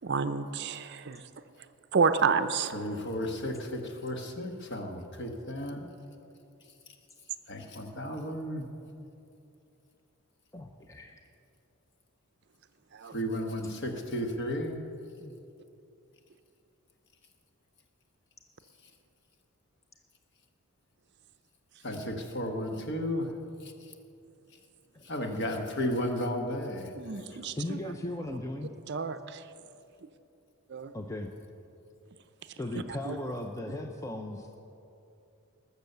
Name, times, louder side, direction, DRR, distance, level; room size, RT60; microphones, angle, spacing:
voice 1, 0.0-1.2 1.9-2.7 12.9-13.1 21.9-22.1 27.0-27.8 28.9-29.4 30.7-30.9 32.7-33.2, right 5 dB, 50° right, 10 dB, 0.5 m, -30 dB
voice 2, 2.7-5.9 7.5-8.7 13.1-14.8 21.8-23.3 23.6-23.9 25.0-27.2, left 1 dB, 55° left, 3 dB, 1.3 m, -34 dB
voice 3, 10.5-11.2 13.1-13.3 15.2-15.4 24.9-25.1 27.6-28.7 30.9-31.3 32.6-34.6, left 1 dB, 15° left, 3 dB, 0.5 m, -37 dB
20.0 x 7.0 x 6.7 m, 2.7 s
head